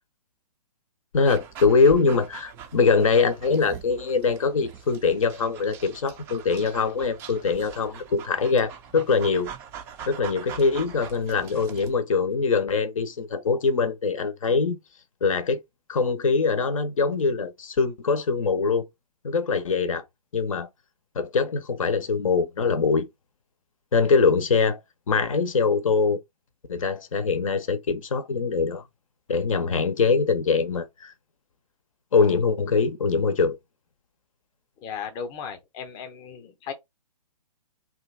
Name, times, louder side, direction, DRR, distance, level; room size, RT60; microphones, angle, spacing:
voice 1, 1.1-9.5 10.1-14.8 15.2-15.6 15.9-18.9 19.2-20.0 20.3-20.7 21.2-23.1 23.9-24.8 25.1-26.2 26.7-28.8 29.3-31.1 32.1-33.6, left 4 dB, 60° left, 0.7 m, -23 dB
Dog, 1.2-12.0, right 7 dB, 15° right, 0.3 m, -42 dB
voice 2, 34.8-36.7, left 6 dB, 20° left, 0.6 m, -36 dB
2.8 x 2.4 x 4.0 m
figure-of-eight pair, 125°, 20 cm